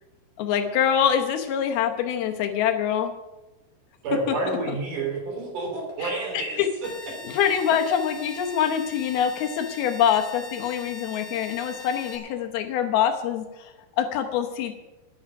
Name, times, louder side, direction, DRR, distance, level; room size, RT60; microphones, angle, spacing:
voice 1, 0.4-3.1 4.3-4.4 4.7-4.8 6.0-6.7 7.3-14.7, left 8 dB, 75° left, 5 dB, 2.7 m, -25 dB
voice 2, 4.0-6.6 7.1-7.2, right 3 dB, 55° right, 1 dB, 4.5 m, -29 dB
sound 1, 6.8-12.2, left 3 dB, 25° left, 2.1 m, -41 dB
13.5 x 11.5 x 5.9 m, 1.1 s
omnidirectional pair, 4.7 m